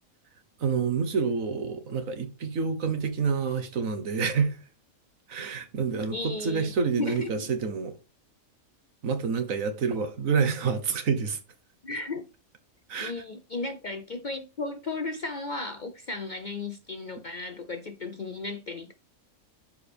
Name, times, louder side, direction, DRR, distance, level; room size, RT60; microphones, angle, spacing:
voice 1, 0.6-4.6 5.3-7.9 9.0-11.4 12.9-13.1, right 5 dB, 65° right, 1.5 m, -28 dB
voice 2, 6.1-6.7 7.0-7.5 11.8-12.2 13.0-18.9, left 3 dB, 45° left, 0.7 m, -35 dB
11.5 x 4.6 x 3.5 m
omnidirectional pair, 1.5 m